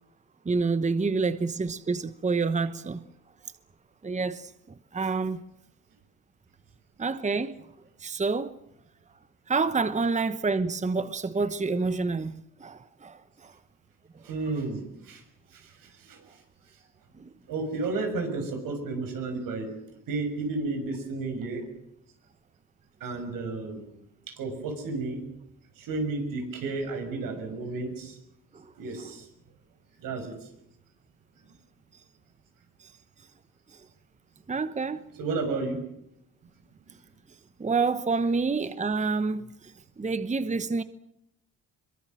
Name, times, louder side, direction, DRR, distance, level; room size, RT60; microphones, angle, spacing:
voice 1, 0.4-3.0 4.0-4.5 4.9-5.4 7.0-7.6 8.0-8.6 9.5-13.5 17.2-17.3 28.5-28.6 32.8-32.9 34.5-35.0 37.6-40.8, right 4 dB, 20° right, 1.1 m, -28 dB
voice 2, 14.2-15.2 15.5-16.2 17.5-19.7 20.1-21.6 23.0-23.8 24.3-25.2 25.8-28.2 28.8-29.3 30.0-30.4 35.2-35.8, right 3 dB, 80° right, 6.3 m, -32 dB
23.0 x 22.0 x 7.7 m
cardioid pair, 85°, 33 cm